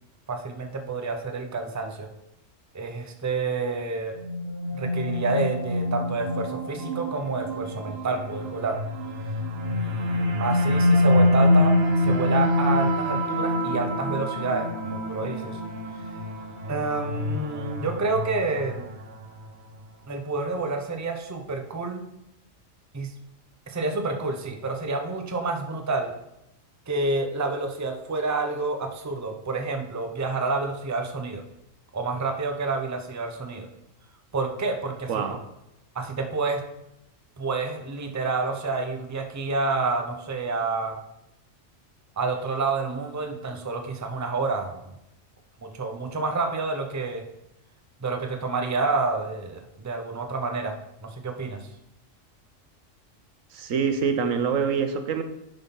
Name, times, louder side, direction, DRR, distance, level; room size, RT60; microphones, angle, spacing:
voice 1, 0.3-2.1 2.7-4.2 4.7-8.8 9.7-15.6 16.7-18.9 20.1-22.1 22.9-23.1 23.7-26.1 26.9-31.4 31.9-33.7 34.3-35.2 35.9-36.6 37.4-41.0 42.2-45.0 45.6-47.2 48.0-50.8 51.0-51.7, right 3 dB, 15° right, 0.6 m, -29 dB
sound 1, 4.2-19.5, left 1 dB, 50° right, 1.2 m, -25 dB
voice 2, 35.1-35.5 53.5-55.2, right 6 dB, 85° right, 1.2 m, -25 dB
10.5 x 3.9 x 5.4 m
omnidirectional pair, 1.3 m